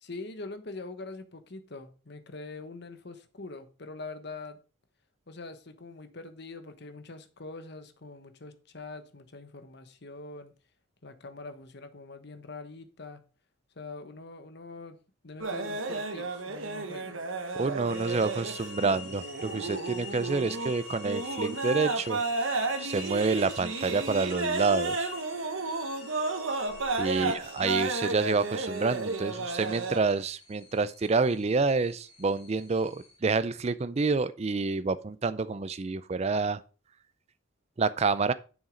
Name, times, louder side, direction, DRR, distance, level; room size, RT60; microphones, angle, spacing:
voice 1, 0.0-4.6 5.3-10.5 11.0-13.2 13.8-15.0 15.2-17.2 27.1-27.4, left 3 dB, 55° left, 1.1 m, -43 dB
sound 1, 15.4-30.0, right 3 dB, 85° right, 1.3 m, -33 dB
voice 2, 17.5-22.2 22.8-25.1 27.0-36.6 37.8-38.3, right 4 dB, 35° right, 0.4 m, -28 dB
sound 2, 17.8-33.2, left 6 dB, 30° left, 3.5 m, -47 dB
7.3 x 6.4 x 5.1 m
head